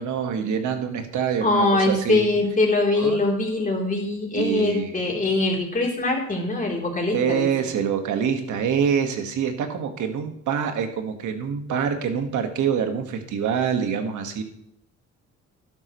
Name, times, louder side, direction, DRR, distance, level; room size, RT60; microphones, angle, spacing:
voice 1, 0.0-2.2 3.0-3.2 4.3-5.0 7.1-14.4, right 7 dB, 75° right, 6 dB, 1.7 m, -25 dB
voice 2, 1.4-7.5, left 2 dB, 25° left, -1 dB, 3.5 m, -22 dB
12.5 x 11.0 x 3.2 m, 0.71 s
cardioid pair, 90°, 30 cm